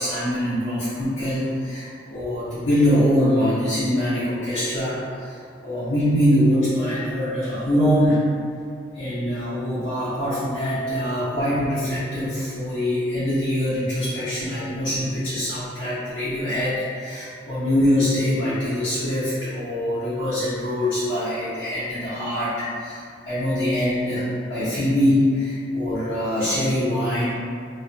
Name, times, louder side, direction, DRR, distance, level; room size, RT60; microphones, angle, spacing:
voice 1, 0.0-8.3 8.9-24.2 24.5-27.2, equal, 90° left, -13 dB, 0.8 m, -23 dB
2.3 x 2.2 x 2.5 m, 2.2 s
head